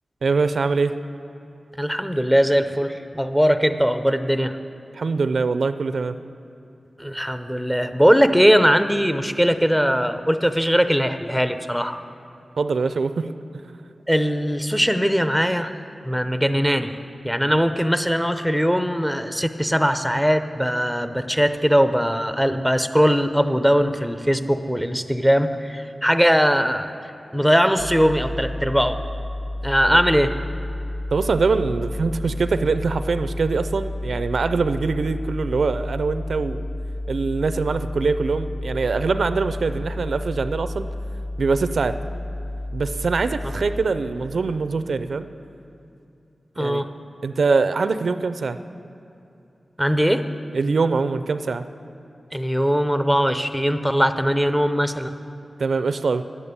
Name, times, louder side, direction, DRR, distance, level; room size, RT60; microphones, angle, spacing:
voice 1, 0.2-0.9 4.9-6.2 12.6-13.3 29.9-30.0 31.1-36.6 37.1-40.9 41.4-42.0 42.7-45.3 46.6-46.8 47.2-48.6 50.5-51.6 55.6-56.2, right 4 dB, 80° right, 11 dB, 0.4 m, -23 dB
voice 2, 1.8-4.6 7.0-12.0 14.1-15.7 16.0-17.0 17.2-26.9 27.3-29.0 29.6-30.3 46.6-46.9 49.8-50.3 52.3-55.1, equal, 5° left, 9 dB, 0.6 m, -20 dB
sound 1, 27.8-43.8, left 1 dB, 80° left, 2.2 m, -31 dB
11.0 x 8.6 x 6.8 m, 2.8 s
cardioid pair, 55°, 0 cm